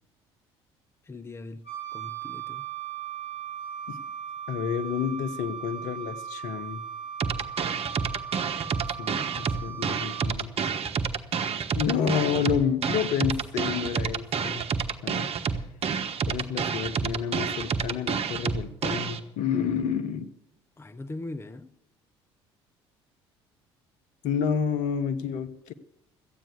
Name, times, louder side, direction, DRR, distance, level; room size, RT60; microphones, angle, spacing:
voice 1, 1.0-2.7 20.8-21.7, left 2 dB, 20° left, 0.8 m, -40 dB
Wind instrument woodwind instrument, 1.7-10.3, right 9 dB, 85° left, 2.8 m, -38 dB
voice 2, 4.5-6.8 9.0-10.5 11.7-14.6 15.0-15.3 16.3-20.3 24.2-25.7, left 7 dB, 65° left, 1.1 m, -29 dB
sound 1, 7.2-19.2, right 6 dB, 45° right, 1.2 m, -29 dB
14.0 x 9.1 x 8.3 m
hypercardioid pair, 60°, 14 cm